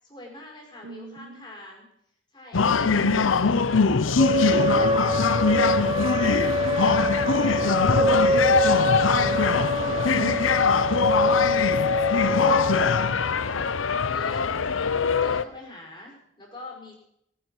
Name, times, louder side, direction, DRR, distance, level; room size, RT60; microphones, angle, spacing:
voice 1, 0.0-1.9 2.3-3.6 12.5-13.7 14.0-17.0, left 2 dB, 25° left, 0 dB, 5.0 m, -45 dB
voice 2, 0.8-1.5 2.8-3.8 4.5-5.8 6.2-7.6 7.9-11.7, right 2 dB, 80° right, 12 dB, 1.1 m, -39 dB
sound 1, 2.5-15.4, left 5 dB, 80° left, 0.7 m, -22 dB
sound 2, 4.2-13.1, equal, 25° right, 0.7 m, -25 dB
sound 3, 6.5-11.7, equal, ahead, 4.4 m, -43 dB
18.5 x 10.5 x 6.2 m, 0.76 s
head